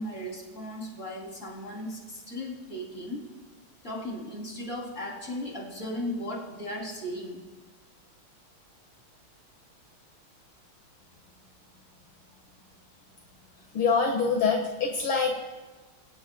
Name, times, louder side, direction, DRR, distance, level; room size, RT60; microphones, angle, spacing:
voice 1, 0.0-3.2 3.8-7.4, left 1 dB, 35° left, -1 dB, 3.8 m, -36 dB
voice 2, 13.7-15.4, left 5 dB, 75° left, 1 dB, 2.6 m, -25 dB
26.5 x 17.5 x 2.3 m, 1.2 s
omnidirectional pair, 2.3 m